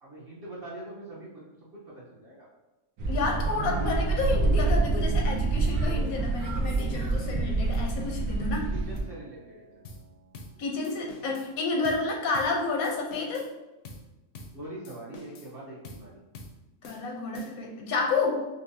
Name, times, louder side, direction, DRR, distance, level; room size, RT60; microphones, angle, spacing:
voice 1, 0.0-2.5 8.7-9.7 14.5-16.3, right 1 dB, 45° right, -7 dB, 1.0 m, -43 dB
sound 1, 3.0-9.0, right 3 dB, 85° right, 1.2 m, -27 dB
voice 2, 3.1-8.6 10.6-13.5 16.8-18.5, left 3 dB, 80° left, 1 dB, 1.1 m, -30 dB
Piano, 3.6-13.2, right 5 dB, 70° right, 0.5 m, -47 dB
sound 2, 9.8-10.1 10.3-10.6 10.8-11.5 11.8-12.1 12.3-12.6 12.8-13.5 13.8-14.1 14.3-14.6 14.8-15.5 15.8-16.1 16.3-16.6 16.8-17.7, left 2 dB, 65° left, 0.7 m, -46 dB
5.3 x 2.0 x 2.6 m, 1.0 s
omnidirectional pair, 1.5 m